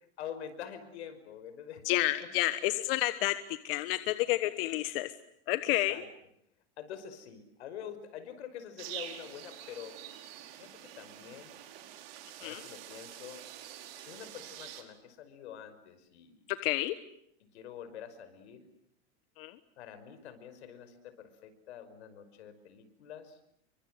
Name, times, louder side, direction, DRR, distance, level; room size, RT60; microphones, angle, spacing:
voice 1, 0.2-2.3 2.6-2.8 5.7-6.1 6.8-10.0 10.6-11.6 12.4-13.4 14.0-16.4 17.5-18.7 19.8-23.4, left 9 dB, 90° left, 11 dB, 5.5 m, -46 dB
voice 2, 1.8-3.3 3.6-5.1 5.5-6.0 12.4-12.6 16.6-16.9 19.4-19.5, left 17 dB, 60° left, 11 dB, 1.4 m, -30 dB
sound 1, 8.8-14.8, right 12 dB, 60° right, 4.8 m, -47 dB
29.5 x 24.5 x 7.9 m, 0.72 s
supercardioid pair, 160°, 33 cm